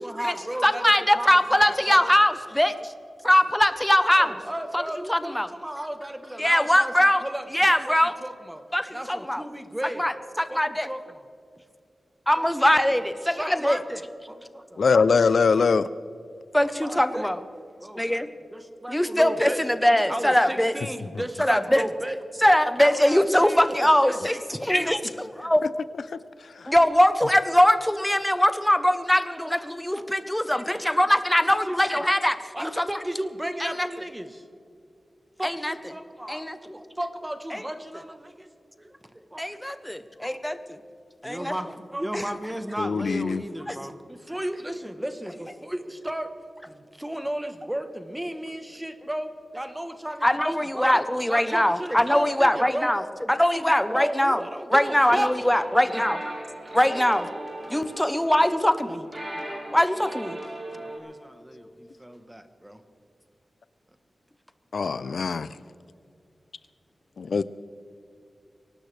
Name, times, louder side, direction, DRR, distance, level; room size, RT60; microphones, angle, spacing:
voice 1, 0.0-2.0 4.1-7.9 8.2-10.1 10.5-11.2 12.4-12.5 12.7-14.9 16.6-17.3 17.8-18.2 18.5-19.6 20.1-22.2 22.8-24.9 29.3-29.6 29.9-31.0 31.7-32.0 32.5-34.4 35.4-38.5 38.8-39.5 39.9-40.4 41.2-46.3 46.7-51.0 51.3-53.0 53.9-55.3 56.3-56.4 60.8-62.8 64.8-65.3, right 1 dB, 10° right, 1.1 m, -35 dB
voice 2, 0.6-2.9 3.2-4.4 4.7-4.8 5.1-5.5 6.4-7.2 7.5-8.1 8.7-9.4 10.0-10.9 12.3-13.8 16.5-17.4 18.0-18.3 18.9-20.7 21.4-21.9 22.4-25.6 26.7-32.9 33.6-33.9 35.4-35.8 36.3-36.7 37.5-37.6 39.4-40.8 41.2-41.5 42.1-42.2 43.7-43.8 50.2-53.0 53.3-54.4 54.7-56.2 56.7-57.3 57.7-59.0 59.7-60.4, left 1 dB, 5° left, 0.8 m, -22 dB
voice 3, 14.8-15.9 42.8-43.4 64.7-65.5 67.2-67.4, left 5 dB, 75° left, 0.4 m, -22 dB
sound 1, 54.8-61.0, right 1 dB, 35° right, 4.6 m, -38 dB
23.5 x 18.0 x 3.4 m
wide cardioid pair, 140°, 0 cm